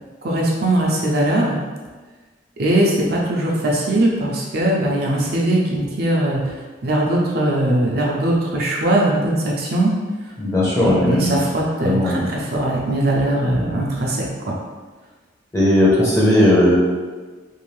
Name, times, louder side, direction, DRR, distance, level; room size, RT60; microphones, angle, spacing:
voice 1, 0.2-1.6 2.6-6.5 6.8-9.9 10.8-14.2 14.5-14.6, right 1 dB, 55° right, -3 dB, 0.5 m, -20 dB
voice 2, 10.4-11.3 11.8-12.3 15.5-16.8, left 1 dB, 15° left, -6 dB, 0.7 m, -16 dB
2.6 x 2.4 x 3.1 m, 1.4 s
head